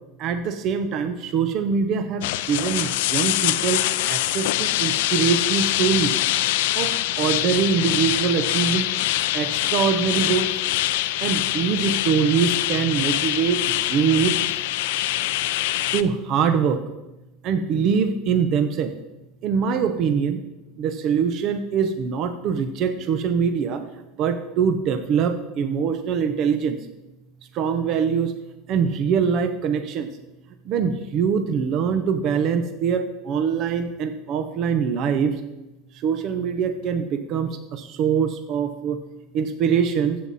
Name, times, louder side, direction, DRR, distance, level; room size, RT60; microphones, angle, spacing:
voice 1, 0.2-6.1 6.7-8.9 9.3-10.5 11.2-14.3 15.9-16.8 17.4-18.9 19.4-20.4 20.8-23.8 24.2-26.8 27.5-28.3 28.7-30.1 30.7-35.3 36.0-39.0 39.3-40.2, right 6 dB, 50° right, 9 dB, 0.9 m, -23 dB
sound 1, 2.2-16.0, left 15 dB, 80° left, 0.5 m, -24 dB
14.5 x 7.8 x 4.2 m, 0.99 s
supercardioid pair, 125°, 0 cm